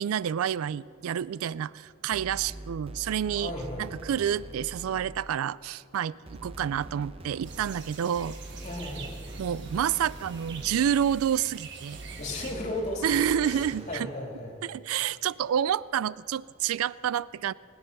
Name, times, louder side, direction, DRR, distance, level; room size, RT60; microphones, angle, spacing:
voice 1, 0.0-3.5 3.8-8.4 9.4-12.0 13.0-14.1 14.6-17.5, right 9 dB, 85° right, 21 dB, 0.3 m, -29 dB
sound 1, 2.1-5.4 6.3-11.4 11.9-14.1, right 1 dB, 25° right, 0.7 m, -43 dB
voice 2, 3.3-3.9 8.6-9.2 12.2-14.6, left 1 dB, 35° left, 0 dB, 2.9 m, -35 dB
sound 2, 7.4-12.5, right 5 dB, 55° right, 1.3 m, -45 dB
20.5 x 9.8 x 6.6 m, 2.3 s
head